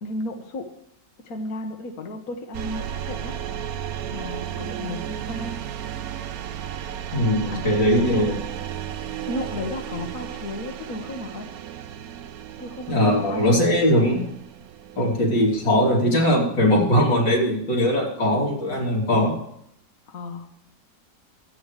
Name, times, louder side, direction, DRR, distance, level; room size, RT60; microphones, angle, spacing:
voice 1, 0.0-0.7 1.2-3.4 4.1-5.6 7.5-7.7 8.0-8.3 9.3-11.5 12.6-13.7 20.1-20.5, left 2 dB, 55° left, 3 dB, 1.6 m, -33 dB
sound 1, 2.5-16.4, right 10 dB, 65° right, 1.0 m, -34 dB
voice 2, 7.1-8.4 12.9-14.3 15.0-19.3, equal, 90° left, -3 dB, 3.8 m, -20 dB
24.5 x 9.0 x 3.3 m, 0.76 s
omnidirectional pair, 1.9 m